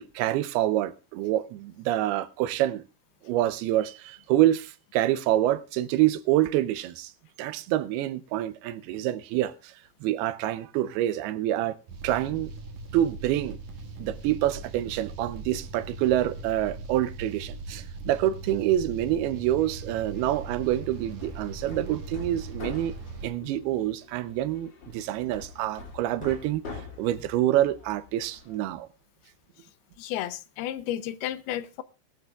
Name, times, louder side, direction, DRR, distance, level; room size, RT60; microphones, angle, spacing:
voice 1, 0.0-2.8 3.2-7.1 7.4-9.7 10.0-11.8 12.0-12.5 12.9-13.6 14.0-23.0 23.2-26.6 27.0-28.9, right 13 dB, 80° right, 2.7 m, -27 dB
sound 1, 11.9-23.3, right 3 dB, 55° right, 3.0 m, -40 dB
Hammer, 20.9-28.7, left 4 dB, 35° left, 2.5 m, -45 dB
voice 2, 30.0-31.8, left 12 dB, 80° left, 2.7 m, -32 dB
20.0 x 12.0 x 2.4 m
omnidirectional pair, 4.5 m